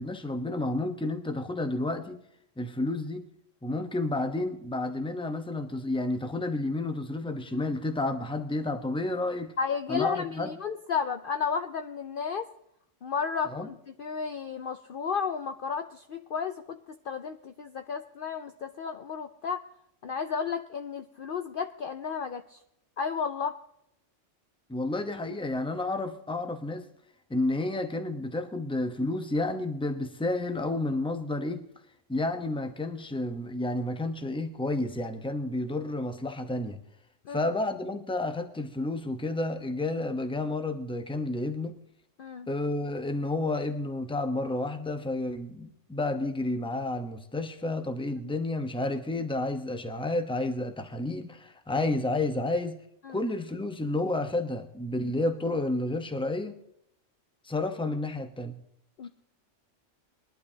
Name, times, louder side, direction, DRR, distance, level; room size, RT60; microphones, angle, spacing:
voice 1, 0.0-2.2 2.6-3.2 3.6-9.5 9.9-10.5 13.5-13.7 24.7-26.9 27.3-31.6 32.1-36.8 37.3-41.8 42.5-52.8 53.1-56.6 57.4-58.6 59.0-59.1, left 2 dB, 5° left, 7 dB, 0.8 m, -31 dB
voice 2, 9.6-12.5 13.0-19.6 20.0-22.6 23.0-23.6 37.3-37.5 42.2-42.5 48.2-48.3 53.0-53.2 59.0-59.1, left 6 dB, 55° left, 8 dB, 0.6 m, -33 dB
21.5 x 11.5 x 2.8 m, 0.77 s
omnidirectional pair, 1.3 m